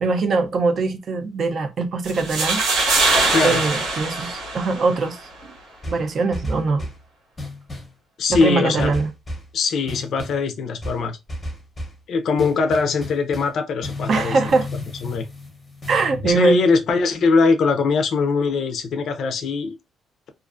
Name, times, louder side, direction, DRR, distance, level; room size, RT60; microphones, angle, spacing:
voice 1, 0.0-2.6 3.4-5.5 5.9-6.9 8.3-9.1 14.1-14.7 15.9-16.6, right 4 dB, 40° right, 0.5 m, -22 dB
sound 1, 2.0-5.1, right 3 dB, 85° right, 1.1 m, -22 dB
voice 2, 3.3-3.6 8.2-9.0 9.5-11.2 12.1-14.4 15.0-15.3 16.2-19.8, left 4 dB, 55° left, 0.5 m, -21 dB
sound 2, 5.8-7.0 7.4-8.0 8.3-9.5 9.9-10.4 10.8-12.0 12.4-16.3, left 1 dB, 15° left, 0.7 m, -33 dB
2.5 x 2.4 x 2.4 m
cardioid pair, 160°, 0 cm